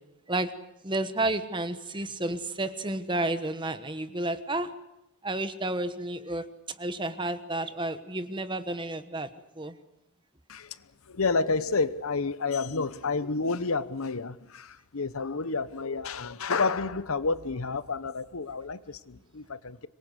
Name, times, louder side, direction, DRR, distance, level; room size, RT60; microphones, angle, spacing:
voice 1, 0.8-4.7 5.2-6.5 6.8-9.7, right 2 dB, 20° right, 1.2 m, -31 dB
voice 2, 11.1-19.9, left 4 dB, 75° left, 0.9 m, -30 dB
25.0 x 22.5 x 8.0 m
head